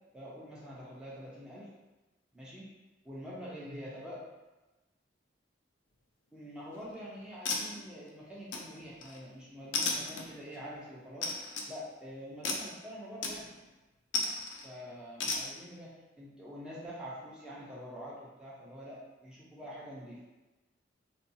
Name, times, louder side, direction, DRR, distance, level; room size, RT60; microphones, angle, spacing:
voice 1, 0.1-1.7 2.3-2.7 3.0-4.2 6.3-11.3 11.7-13.5 14.6-20.2, equal, 5° right, -8 dB, 0.5 m, -46 dB
sound 1, 6.6-7.0 7.5-8.1 8.5-9.2 9.7-10.6 11.2-11.7 12.4-12.7 13.2-13.7 14.1-14.7 15.2-15.4, left 3 dB, 80° left, 0.4 m, -34 dB
2.7 x 2.3 x 2.6 m, 1.1 s
head